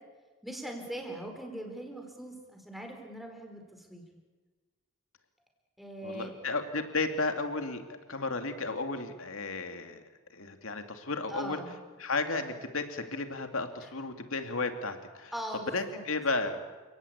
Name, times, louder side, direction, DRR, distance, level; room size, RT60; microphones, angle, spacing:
voice 1, 0.4-4.0 5.8-6.3 11.3-11.8 15.3-16.0, right 1 dB, ahead, 2 dB, 4.5 m, -41 dB
voice 2, 6.0-10.0 10.3-11.6 12.0-15.3 15.7-16.6, left 3 dB, 70° left, 6 dB, 2.5 m, -33 dB
30.0 x 18.0 x 8.7 m, 1.3 s
head